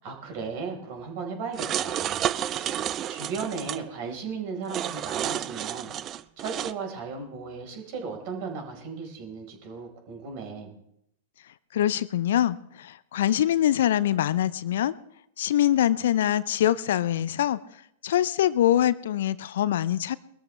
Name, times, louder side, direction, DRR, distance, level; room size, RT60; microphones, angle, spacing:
voice 1, 0.0-5.9 6.4-10.7, right 5 dB, 50° right, 3 dB, 4.3 m, -36 dB
sound 1, 1.5-3.8 4.7-6.7, right 11 dB, 30° right, 0.5 m, -30 dB
voice 2, 11.7-14.9 15.4-17.6 18.0-20.2, left 11 dB, 60° left, 17 dB, 0.5 m, -24 dB
22.0 x 13.5 x 3.3 m, 0.76 s
figure-of-eight pair, 100°, 0 cm